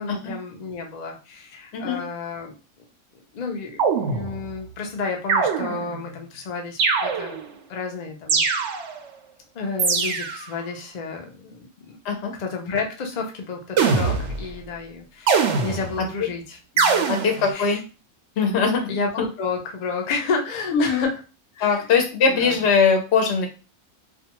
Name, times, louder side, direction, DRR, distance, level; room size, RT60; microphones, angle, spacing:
voice 1, 0.0-2.5 3.3-7.4 7.7-8.4 9.5-12.0 12.4-17.1 17.4-17.8 18.9-21.2 21.5-21.9 22.3-22.6, left 4 dB, 80° left, 1 dB, 0.3 m, -31 dB
sound 1, 3.8-4.6 5.3-6.0 6.8-7.5 8.3-9.1 9.8-10.5 13.8-14.5 15.3-16.1 16.8-17.5, right 5 dB, 65° right, 0.7 m, -22 dB
voice 2, 17.1-17.8 18.4-18.8 20.7-21.1 21.6-23.5, left 5 dB, 60° left, 3 dB, 0.7 m, -20 dB
2.5 x 2.3 x 2.9 m, 0.33 s
omnidirectional pair, 1.6 m